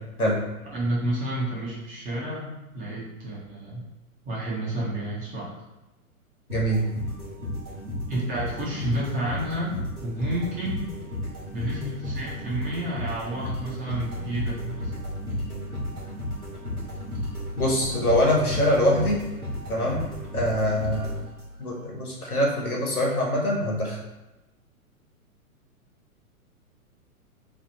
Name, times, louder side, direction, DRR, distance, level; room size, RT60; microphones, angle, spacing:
voice 1, 0.7-3.8 4.2-5.5 8.1-9.8 10.0-10.9 11.5-14.9, right 1 dB, 20° right, -6 dB, 0.9 m, -30 dB
voice 2, 6.5-6.8 17.6-19.2 19.7-21.1 21.6-24.0, equal, 85° left, -3 dB, 1.2 m, -24 dB
sound 1, 6.5-21.8, left 1 dB, 90° right, 1.2 m, -33 dB
3.0 x 2.5 x 4.1 m, 1.0 s
figure-of-eight pair, 105°, 43 cm